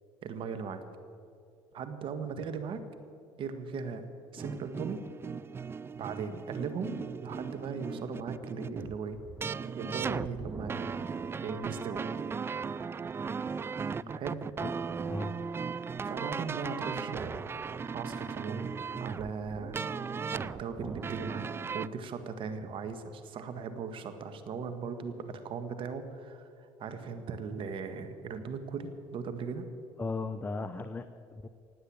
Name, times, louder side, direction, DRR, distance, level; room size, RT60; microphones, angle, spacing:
voice 1, 0.2-0.8 1.7-2.8 3.4-4.0 4.3-5.1 5.9-9.2 9.8-10.9 11.4-12.0 14.1-14.4 16.0-17.4 17.9-19.8 20.3-21.5 21.7-29.7, right 5 dB, 55° right, 9 dB, 1.6 m, -38 dB
sound 1, 4.4-21.9, right 5 dB, 20° right, 0.3 m, -37 dB
voice 2, 30.0-31.5, left 3 dB, 15° left, 10 dB, 0.6 m, -37 dB
18.5 x 8.0 x 8.6 m, 2.4 s
supercardioid pair, 95°, 11 cm